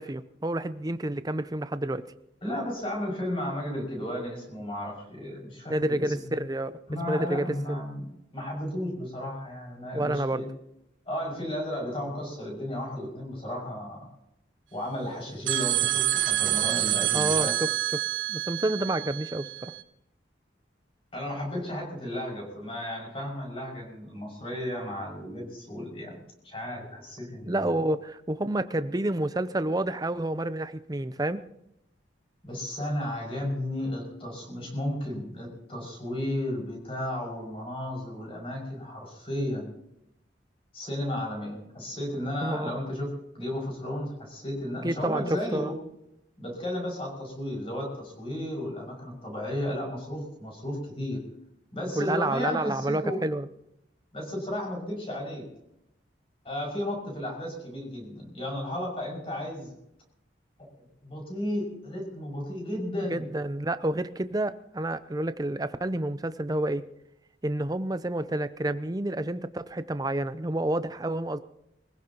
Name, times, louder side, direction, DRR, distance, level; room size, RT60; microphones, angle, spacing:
voice 1, 0.0-2.0 5.7-6.8 7.1-7.8 9.9-10.4 17.1-17.5 17.9-18.0 18.3-19.7 27.4-31.4 42.4-42.8 44.8-45.2 45.5-45.7 52.0-53.5 63.1-66.8 67.4-71.4, right 1 dB, 20° right, 12 dB, 0.6 m, -29 dB
voice 2, 2.4-6.4 6.9-10.5 11.1-14.1 14.7-17.6 21.1-27.7 32.4-39.7 40.7-45.8 46.4-51.2 51.7-53.2 54.1-55.5 56.4-59.7 60.6-60.7 61.0-63.2, left 1 dB, 30° left, -1 dB, 5.9 m, -34 dB
sound 1, 15.5-19.8, right 14 dB, 85° right, 1.1 m, -27 dB
23.5 x 16.0 x 3.0 m, 0.81 s
head